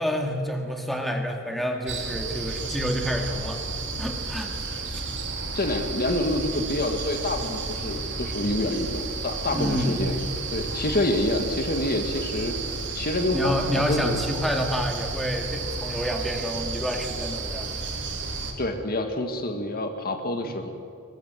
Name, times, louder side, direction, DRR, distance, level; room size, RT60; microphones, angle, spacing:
voice 1, 0.0-3.6 4.0-5.0 9.5-10.2 13.3-18.1 20.4-20.5, equal, ahead, 2 dB, 2.0 m, -29 dB
sound 1, 1.9-18.5, right 3 dB, 55° right, 2.9 m, -32 dB
voice 2, 5.5-10.2 10.5-12.6 12.9-14.2 18.6-20.7, left 1 dB, 40° left, 6 dB, 1.9 m, -27 dB
22.5 x 20.5 x 8.1 m, 2.4 s
head